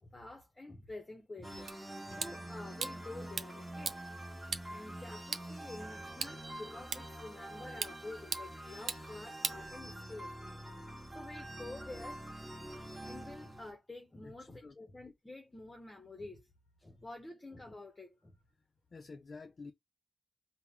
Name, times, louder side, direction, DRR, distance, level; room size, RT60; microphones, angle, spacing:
voice 1, 0.0-1.7 2.0-4.0 4.7-10.6 10.9-12.3 13.0-16.5 16.8-18.4, left 2 dB, 25° left, 0.8 m, -49 dB
sound 1, 1.4-13.7, right 1 dB, 15° right, 1.3 m, -46 dB
sound 2, 1.7-10.3, right 6 dB, 85° right, 0.4 m, -43 dB
voice 2, 14.2-14.8 16.9-17.0 18.9-19.7, left 4 dB, 50° left, 0.4 m, -50 dB
3.6 x 2.1 x 4.2 m
wide cardioid pair, 115°, 0 cm